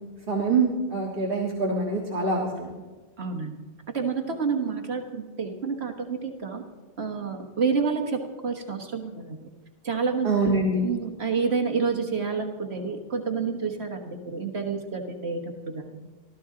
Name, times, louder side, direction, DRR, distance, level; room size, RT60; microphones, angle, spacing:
voice 1, 0.3-2.7 10.2-10.8, right 3 dB, 55° right, -2 dB, 2.0 m, -25 dB
voice 2, 3.2-3.6 3.9-6.6 7.0-9.4 9.8-10.5 10.8-16.1, right 5 dB, 75° right, 3 dB, 1.7 m, -29 dB
24.5 x 14.0 x 3.8 m, 1.3 s
omnidirectional pair, 1.1 m